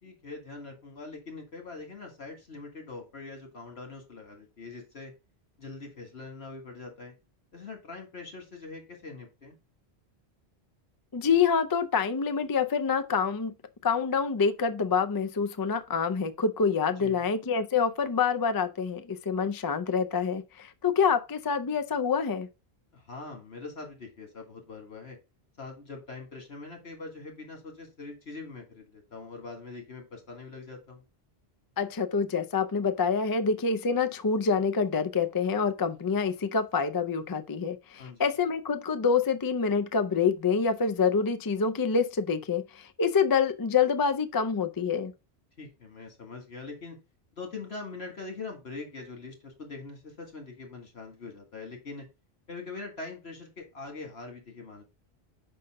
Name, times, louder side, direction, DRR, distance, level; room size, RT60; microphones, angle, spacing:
voice 1, 0.0-5.1 5.6-7.1 7.5-9.6 17.0-17.3 22.9-25.2 25.6-31.0 38.0-38.3 45.6-47.0 47.3-52.1 52.5-54.8, left 3 dB, 70° left, 2.2 m, -43 dB
voice 2, 11.1-13.5 13.8-22.5 31.8-45.1, left 5 dB, 35° left, 0.3 m, -26 dB
5.6 x 5.4 x 3.6 m
omnidirectional pair, 1.1 m